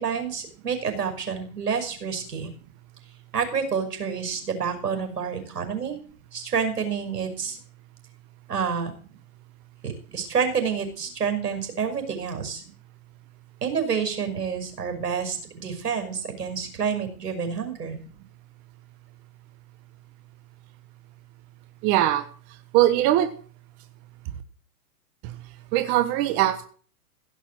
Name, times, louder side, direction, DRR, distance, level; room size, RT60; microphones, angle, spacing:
voice 1, 0.0-2.5 3.3-6.0 6.3-7.6 8.5-8.9 9.8-12.6 13.6-18.0, right 6 dB, 85° right, 6 dB, 5.8 m, -28 dB
voice 2, 21.8-22.3 22.7-23.3 25.7-26.6, right 13 dB, 30° right, 9 dB, 1.3 m, -21 dB
16.0 x 7.1 x 7.7 m, 0.43 s
hypercardioid pair, 140°, 46 cm